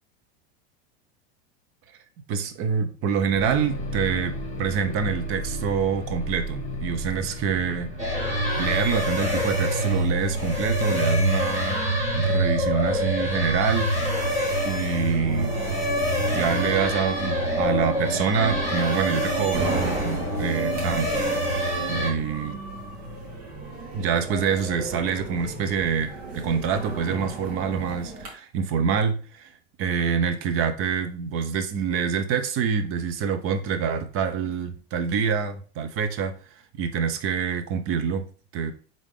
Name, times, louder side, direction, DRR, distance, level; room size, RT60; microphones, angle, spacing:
voice 1, 2.3-7.9 8.5-11.8 12.1-13.9 14.7-15.8 16.3-21.2 21.8-22.6 23.9-29.5 29.8-36.4 36.7-38.3 38.5-38.7, right 6 dB, 40° right, 0.7 m, -26 dB
sound 1, 3.3-20.3, equal, 20° left, 1.2 m, -37 dB
sound 2, 8.0-22.1, equal, 20° right, 1.9 m, -25 dB
sound 3, 13.9-28.3, right 2 dB, 70° right, 2.0 m, -36 dB
3.7 x 3.6 x 3.6 m
supercardioid pair, 120°, 32 cm